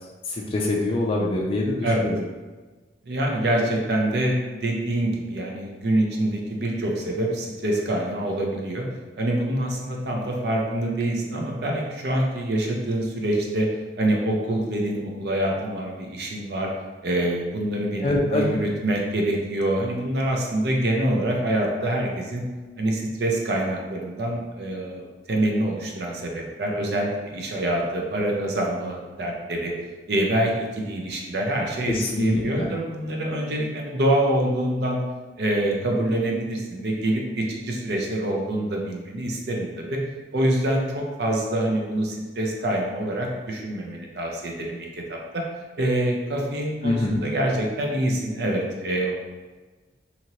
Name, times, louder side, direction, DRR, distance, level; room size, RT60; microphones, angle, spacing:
voice 1, 0.5-2.2 18.0-18.6 31.9-32.7 46.8-47.3, left 2 dB, 30° left, -2 dB, 0.3 m, -24 dB
voice 2, 3.0-8.8 9.2-13.7 14.0-16.7 17.0-22.4 22.8-29.7 30.1-35.0 35.4-40.0 40.3-45.4 45.8-49.2, right 1 dB, 65° right, -1 dB, 0.5 m, -25 dB
2.8 x 2.6 x 2.9 m, 1.3 s
head